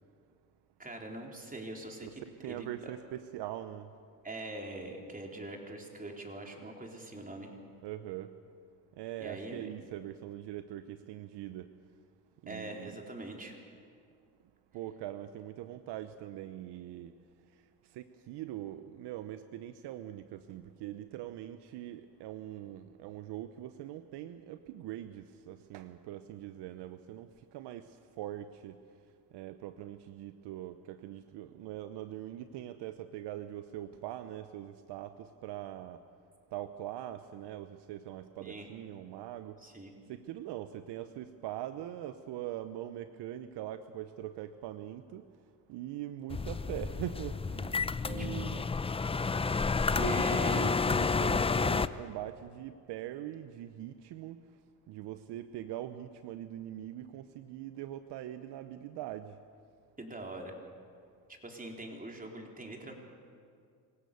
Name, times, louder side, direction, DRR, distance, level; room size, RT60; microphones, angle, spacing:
voice 1, 0.8-2.9 4.2-7.6 9.2-9.7 12.5-13.6 38.4-38.7 39.6-39.9 48.0-48.3 48.5-48.6 50.0-50.7 60.0-60.5 61.4-62.9, right 1 dB, 20° right, 1 dB, 4.0 m, -43 dB
voice 2, 2.4-3.9 7.8-8.3 9.0-11.7 12.4-13.0 14.7-17.1 17.9-27.9 28.2-28.8 29.3-36.0 36.5-39.6 40.1-45.2 45.7-48.6 49.9-54.4 54.9-59.3, right 12 dB, 70° right, 11 dB, 0.9 m, -42 dB
sound 1, 46.3-51.9, left 4 dB, 15° left, 0.5 m, -30 dB
25.5 x 16.5 x 7.0 m, 2.2 s
supercardioid pair, 80°, 43 cm